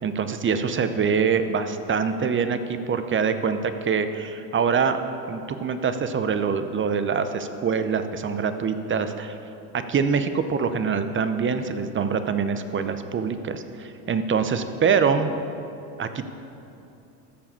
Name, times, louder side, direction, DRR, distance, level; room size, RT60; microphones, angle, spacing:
voice 1, 0.0-5.0 5.3-9.4 9.9-15.3 16.0-16.2, right 6 dB, 25° right, 10 dB, 0.7 m, -24 dB
13.5 x 4.8 x 6.9 m, 2.9 s
hypercardioid pair, 85°, 49 cm